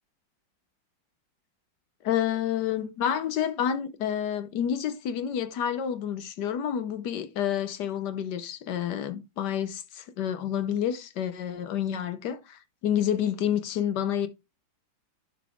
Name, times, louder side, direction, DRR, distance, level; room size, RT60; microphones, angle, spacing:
voice 1, 2.0-14.3, left 9 dB, 70° left, 1.2 m, -29 dB
10.5 x 3.9 x 3.5 m
omnidirectional pair, 2.1 m